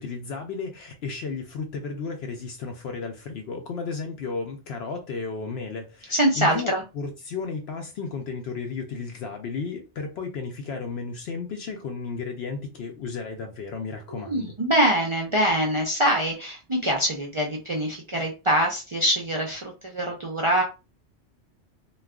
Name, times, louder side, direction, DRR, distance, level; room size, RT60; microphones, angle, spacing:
voice 1, 0.0-14.5, left 4 dB, 70° left, 0.8 m, -33 dB
voice 2, 6.1-6.8 14.1-20.6, equal, 40° right, 0.4 m, -24 dB
2.3 x 2.3 x 3.4 m
omnidirectional pair, 1.1 m